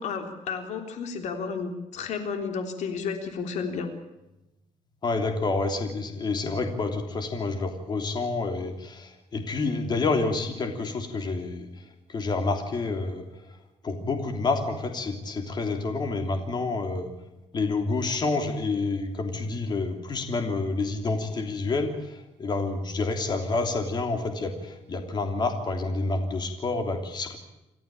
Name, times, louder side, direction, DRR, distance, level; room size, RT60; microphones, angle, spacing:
voice 1, 0.0-3.9, left 5 dB, 80° left, 6 dB, 3.5 m, -32 dB
voice 2, 5.0-11.7 12.1-13.2 13.8-17.1 17.5-27.4, left 3 dB, 35° left, 5 dB, 3.2 m, -28 dB
27.5 x 14.5 x 8.9 m, 0.95 s
cardioid pair, 140°, 12 cm